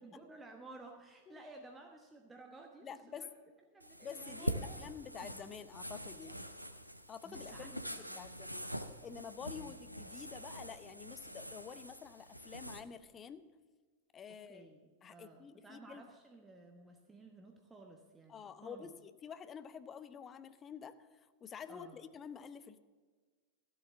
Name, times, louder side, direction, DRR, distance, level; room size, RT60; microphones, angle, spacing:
voice 1, 0.0-3.4 3.7-4.8 7.2-8.3 9.4-9.8 14.3-18.9 21.7-22.0, right 2 dB, 15° right, 2 dB, 1.2 m, -55 dB
voice 2, 2.8-3.2 4.0-6.5 7.1-7.8 8.2-8.7 9.0-13.5 14.1-14.7 15.0-16.1 18.3-22.8, left 7 dB, 25° left, 13 dB, 0.7 m, -49 dB
sound 1, 3.8-12.8, equal, 90° right, 0.7 m, -44 dB
14.0 x 8.0 x 7.0 m, 1.5 s
figure-of-eight pair, 90°, 0 cm